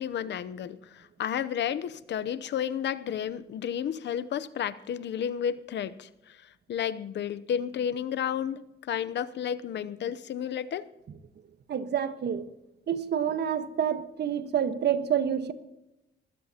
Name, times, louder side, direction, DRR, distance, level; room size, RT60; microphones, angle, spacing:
voice 1, 0.0-6.4 6.7-10.9, left 9 dB, 70° left, 14 dB, 0.7 m, -32 dB
voice 2, 11.7-12.4 12.9-15.5, right 8 dB, 60° right, 10 dB, 1.3 m, -28 dB
20.5 x 15.5 x 2.9 m, 0.92 s
cardioid pair, 80°, 19 cm